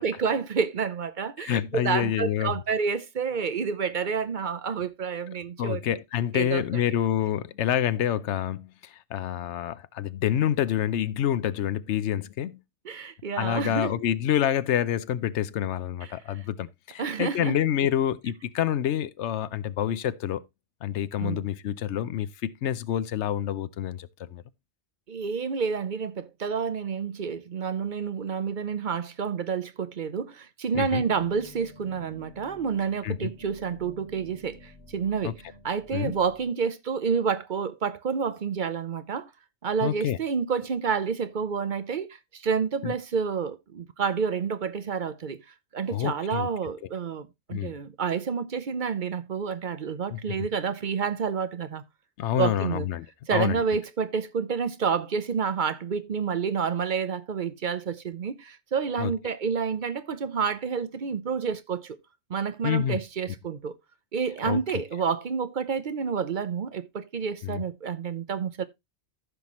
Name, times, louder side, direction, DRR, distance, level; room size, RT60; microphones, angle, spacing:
voice 1, 0.0-5.8 6.3-6.6 12.8-13.9 16.3-16.4 17.0-17.6 21.2-21.5 25.1-35.3 35.6-39.3 39.6-45.4 45.7-51.8 52.4-52.9 53.3-62.0 62.3-63.7 64.1-68.6, right 6 dB, 50° right, 0.8 m, -29 dB
voice 2, 1.4-2.5 5.6-12.6 13.4-20.4 20.8-24.4 30.7-31.0 33.0-33.3 35.2-35.3 35.9-36.1 39.8-40.2 42.8-42.9 45.9-46.5 47.5-47.7 50.1-50.4 52.2-53.1 53.3-53.6 59.0-59.1 62.6-63.0 64.4-64.6 67.4-67.6, left 10 dB, 80° left, 1.0 m, -27 dB
sound 1, 30.8-36.4, left 2 dB, 55° left, 3.2 m, -51 dB
14.5 x 5.8 x 3.0 m
omnidirectional pair, 1.2 m